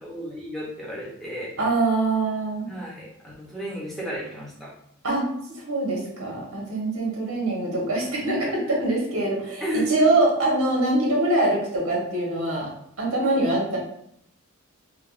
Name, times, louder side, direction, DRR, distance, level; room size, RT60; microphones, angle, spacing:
voice 1, 0.0-1.5 2.7-4.7 9.6-10.1 13.2-13.4, equal, ahead, -6 dB, 0.6 m, -31 dB
voice 2, 1.6-2.7 5.0-5.3 5.5-12.7 13.0-13.8, right 2 dB, 85° right, -3 dB, 1.1 m, -24 dB
3.4 x 2.2 x 2.4 m, 0.73 s
head